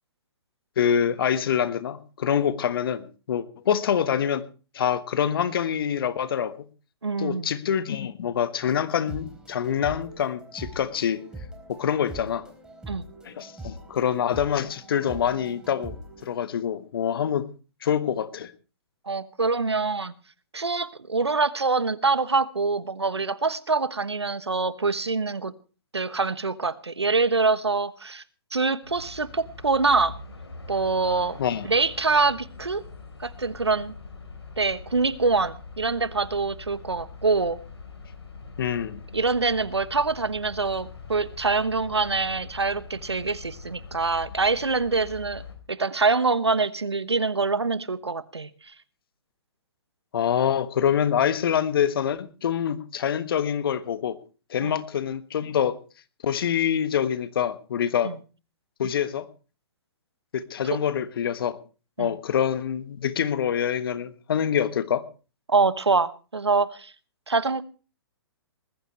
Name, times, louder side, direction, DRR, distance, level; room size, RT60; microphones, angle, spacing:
voice 1, 0.8-4.4 4.7-6.5 7.2-11.2 11.7-12.5 13.2-16.0 16.2-17.5 17.8-18.5 31.4-31.7 38.6-39.0 50.1-54.2 54.5-55.8 56.2-58.1 58.8-59.2 60.3-61.5 62.0-65.0, left 8 dB, 60° left, 13 dB, 1.5 m, -25 dB
voice 2, 7.0-7.5 12.9-13.0 19.1-20.1 20.5-25.5 25.9-28.2 28.5-30.2 30.7-31.4 31.6-32.8 33.2-33.9 34.6-37.6 39.1-45.4 45.7-48.5 54.6-54.8 58.0-58.2 60.7-60.8 62.0-62.1 65.5-66.9 67.3-67.6, right 4 dB, 90° right, 16 dB, 1.1 m, -25 dB
sound 1, 8.6-16.3, right 1 dB, 5° right, 3.8 m, -43 dB
sound 2, 28.8-45.6, left 4 dB, 80° left, 4.2 m, -43 dB
20.0 x 15.0 x 3.3 m, 0.35 s
figure-of-eight pair, 120°, 14 cm